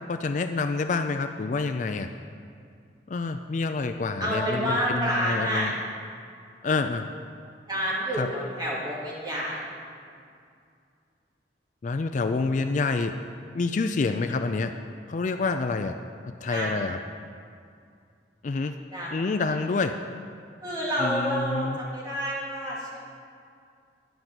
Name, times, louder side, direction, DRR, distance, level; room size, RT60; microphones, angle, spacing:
voice 1, 0.1-2.1 3.1-5.7 6.6-7.1 8.2-8.3 11.8-13.1 13.5-14.7 15.1-16.0 16.3-17.0 18.4-18.7 19.1-20.0 21.0-21.8, left 4 dB, 45° left, 8 dB, 0.4 m, -27 dB
voice 2, 4.2-5.7 7.7-9.7 16.5-16.7 18.9-19.1 19.5-19.6 20.6-23.0, equal, 25° right, -6 dB, 2.5 m, -29 dB
11.0 x 5.8 x 7.8 m, 2.4 s
head